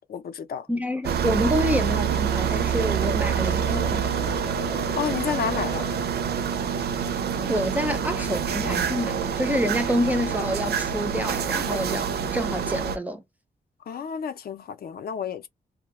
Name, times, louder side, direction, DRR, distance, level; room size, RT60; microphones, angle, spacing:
voice 1, 0.1-0.7 5.0-5.9 13.9-15.5, left 7 dB, 65° left, 0.5 m, -30 dB
voice 2, 0.7-4.2 7.4-13.2, equal, 10° right, 0.4 m, -27 dB
sound 1, 1.0-13.0, right 7 dB, 75° right, 0.4 m, -26 dB
sound 2, 2.1-6.6, left 5 dB, 85° left, 0.8 m, -39 dB
2.3 x 2.1 x 2.9 m
wide cardioid pair, 160°, 17 cm